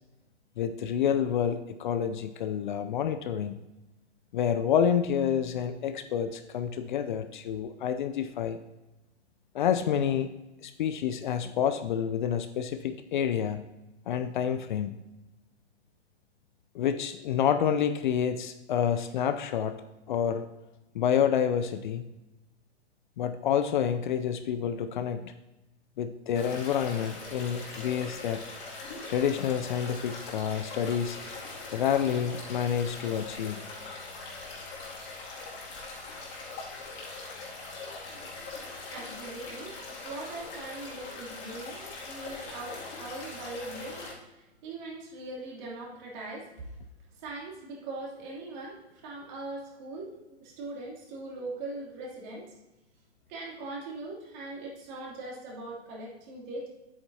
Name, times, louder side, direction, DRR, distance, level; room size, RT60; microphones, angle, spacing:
voice 1, 0.6-3.6 4.3-8.6 9.5-10.3 10.6-13.6 14.1-14.9 16.7-19.7 20.1-20.5 20.9-22.1 23.2-25.3 26.0-28.4 29.1-31.2 31.7-33.6, left 8 dB, 45° left, 10 dB, 0.5 m, -28 dB
sound 1, 26.3-44.1, left 3 dB, 30° left, 2.4 m, -41 dB
voice 2, 38.9-44.0 44.6-46.5 47.2-50.1 50.4-52.5 53.3-56.7, right 2 dB, 40° right, -3 dB, 3.0 m, -40 dB
9.9 x 8.4 x 2.8 m, 1.0 s
hypercardioid pair, 120°, 34 cm